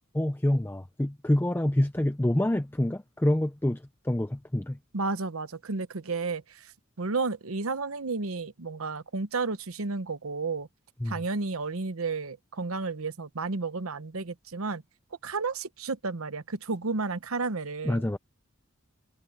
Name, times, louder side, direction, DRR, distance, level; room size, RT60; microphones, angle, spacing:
voice 1, 0.1-4.8 11.0-11.2 17.8-18.2, left 1 dB, 10° left, 0.5 m, -27 dB
voice 2, 4.9-6.7 7.0-10.7 11.1-14.8 15.2-18.1, right 4 dB, 85° right, 1.0 m, -32 dB
head